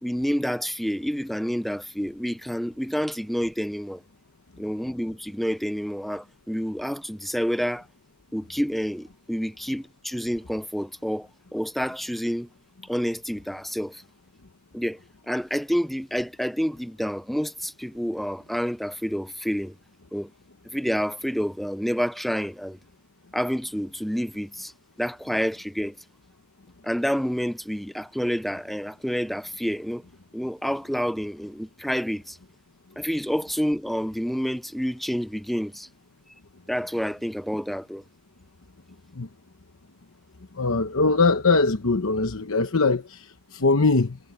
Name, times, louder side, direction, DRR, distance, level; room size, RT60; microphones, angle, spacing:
voice 1, 0.0-4.0 4.6-7.9 8.3-12.5 12.9-14.0 14.7-15.0 15.3-19.7 20.1-20.3 20.7-22.8 23.3-24.7 25.0-26.0 26.8-30.0 30.3-32.4 33.0-35.9 36.7-38.0, equal, ahead, 0.4 m, -28 dB
voice 2, 40.6-44.2, left 3 dB, 65° left, 1.0 m, -22 dB
head